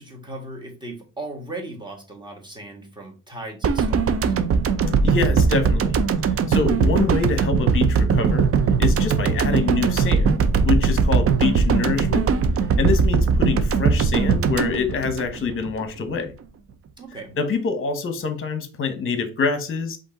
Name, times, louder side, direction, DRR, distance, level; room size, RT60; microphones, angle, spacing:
voice 1, 0.0-4.3 17.0-17.4, right 2 dB, 15° right, 1.5 m, -37 dB
sound 1, 3.6-15.8 16.1-16.3, right 5 dB, 45° right, 0.5 m, -20 dB
voice 2, 5.0-6.0 6.5-8.5 8.8-12.3 12.8-16.3 17.4-20.0, left 5 dB, 40° left, 0.9 m, -25 dB
5.2 x 2.6 x 3.8 m
cardioid pair, 120°, 34 cm